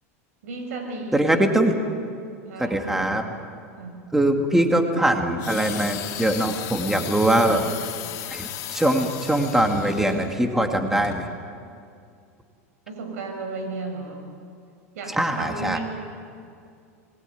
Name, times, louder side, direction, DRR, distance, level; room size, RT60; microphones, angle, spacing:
voice 1, 0.4-1.5 2.5-3.2 3.8-4.0 7.3-7.7 12.9-14.3 14.9-15.8, right 3 dB, 80° right, 4 dB, 6.1 m, -34 dB
voice 2, 1.1-1.8 2.6-3.2 4.1-7.6 8.3-11.3 15.1-15.8, right 1 dB, 5° right, 4 dB, 2.4 m, -22 dB
sound 1, 5.4-10.3 11.0-11.2, left 13 dB, 50° left, 2.9 m, -35 dB
26.5 x 20.5 x 9.5 m, 2.3 s
supercardioid pair, 120°, 8 cm